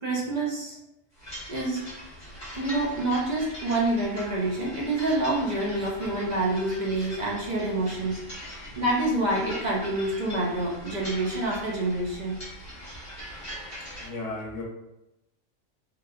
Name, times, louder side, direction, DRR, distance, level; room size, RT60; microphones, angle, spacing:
voice 1, 0.0-0.8 1.5-1.8 2.6-8.2 8.5-12.4, right 2 dB, 50° right, -4 dB, 0.5 m, -27 dB
sound 1, 1.2-14.1, equal, 30° left, 1.1 m, -41 dB
voice 2, 13.9-14.6, left 2 dB, 70° left, -2 dB, 0.9 m, -36 dB
3.0 x 2.3 x 2.3 m, 0.90 s
omnidirectional pair, 1.4 m